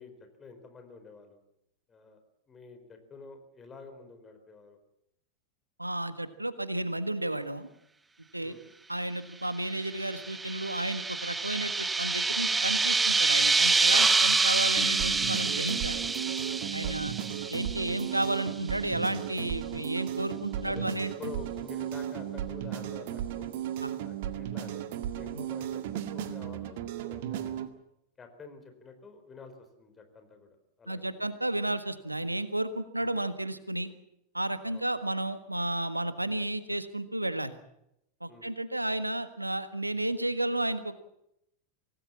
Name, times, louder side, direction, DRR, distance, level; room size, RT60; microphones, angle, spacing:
voice 1, 0.0-1.4 1.9-2.2 2.5-4.8 8.4-8.6 14.8-15.0 16.8-17.0 19.7-19.9 20.7-23.5 24.0-27.6 28.2-30.5 30.8-31.2 33.0-33.2 34.7-34.9 38.3-38.5, left 4 dB, 20° left, 7 dB, 4.5 m, -48 dB
voice 2, 5.8-7.7 8.3-8.6 8.9-16.0 16.7-17.1 17.5-21.1 23.8-23.9 25.3-25.4 30.9-33.9 34.3-37.5 38.2-40.9, right 1 dB, 85° right, 12 dB, 1.5 m, -32 dB
sound 1, 9.8-18.2, right 4 dB, 10° right, 1.1 m, -27 dB
sound 2, 14.8-27.7, right 11 dB, 50° right, 1.9 m, -35 dB
25.5 x 18.5 x 7.3 m, 0.81 s
figure-of-eight pair, 90°, 0 cm